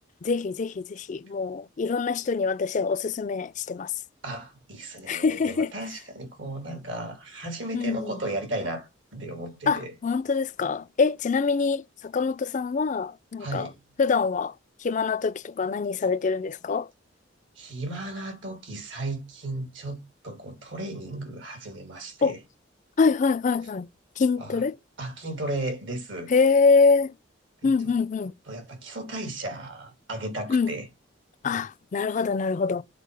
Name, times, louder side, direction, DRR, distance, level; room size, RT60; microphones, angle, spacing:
voice 1, 0.2-3.9 5.1-5.7 7.7-8.1 9.7-13.7 14.0-14.5 14.8-16.9 22.2-22.3 23.0-23.9 24.2-24.8 26.3-27.1 27.6-28.3 30.5-30.7 31.4-32.8, left 4 dB, 40° left, 0.4 m, -24 dB
voice 2, 4.2-9.9 13.4-13.8 17.6-20.0 20.2-22.4 24.4-24.6 25.0-26.3 27.6-27.9 28.5-30.9, right 1 dB, 75° right, 2.6 m, -35 dB
6.6 x 4.4 x 5.1 m
head